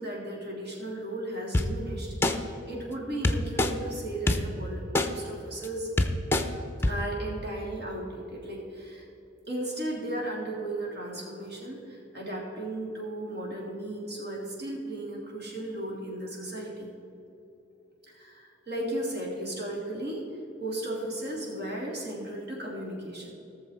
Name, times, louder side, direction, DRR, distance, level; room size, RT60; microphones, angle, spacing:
voice 1, 0.0-5.9 6.9-9.1 9.5-16.9 18.1-20.2 20.6-23.3, right 1 dB, 55° right, -3 dB, 3.2 m, -35 dB
sound 1, 1.5-1.7 2.2-2.3 3.2-3.7 4.3-4.4 4.9-5.1 5.6-5.7 6.0-6.4 6.8-6.9, left 2 dB, 10° left, 0.6 m, -23 dB
18.0 x 7.1 x 4.7 m, 3.0 s
head